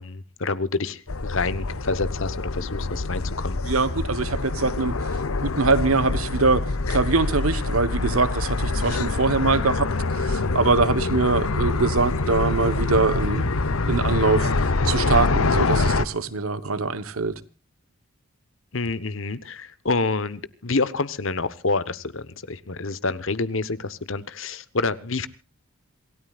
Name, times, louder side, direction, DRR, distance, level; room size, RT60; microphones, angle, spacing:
voice 1, 0.0-3.6 18.7-25.3, left 3 dB, 65° left, 1.2 m, -28 dB
sound 1, 1.1-16.0, left 3 dB, 85° left, 0.9 m, -25 dB
voice 2, 3.6-5.0 5.4-13.4 13.9-14.5 14.8-17.4, right 3 dB, 85° right, 1.4 m, -23 dB
27.5 x 16.5 x 2.5 m
head